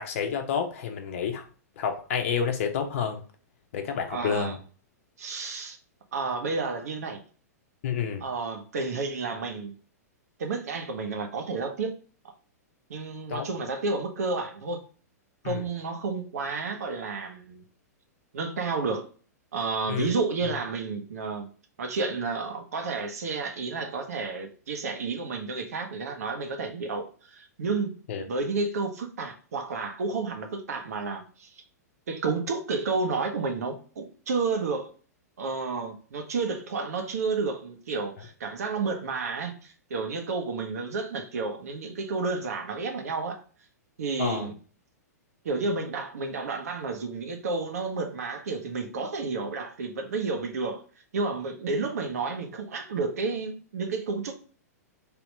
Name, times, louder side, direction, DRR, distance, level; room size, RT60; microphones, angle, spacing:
voice 1, 0.0-1.4 1.8-3.2 3.7-4.5 7.8-8.2 13.3-13.5 15.4-15.6 19.9-20.1 28.1-28.2 44.2-44.5, left 7 dB, 50° left, 0.9 m, -29 dB
voice 2, 4.1-4.6 5.2-5.8 6.1-7.2 8.2-9.7 10.4-12.0 12.9-14.8 15.4-17.6 18.3-19.1 19.5-21.5 21.8-28.0 28.2-31.5 32.1-34.9 35.4-43.4 44.0-44.6 45.4-50.8 51.1-54.3, right 4 dB, 65° right, 1.0 m, -31 dB
3.5 x 3.0 x 4.6 m
figure-of-eight pair, 105°, 9 cm